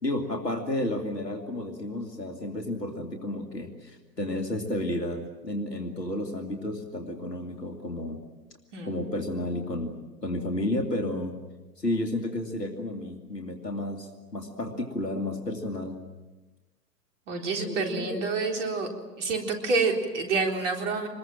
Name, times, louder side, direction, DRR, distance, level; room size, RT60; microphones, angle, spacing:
voice 1, 0.0-8.2 8.8-9.9 10.2-11.4 11.8-16.0 17.6-18.3, left 1 dB, 80° left, 3 dB, 2.7 m, -32 dB
voice 2, 8.7-9.0 17.3-18.9 19.2-21.1, right 4 dB, 45° right, 2 dB, 4.0 m, -28 dB
26.5 x 21.5 x 7.6 m, 1.2 s
figure-of-eight pair, 115°, 48 cm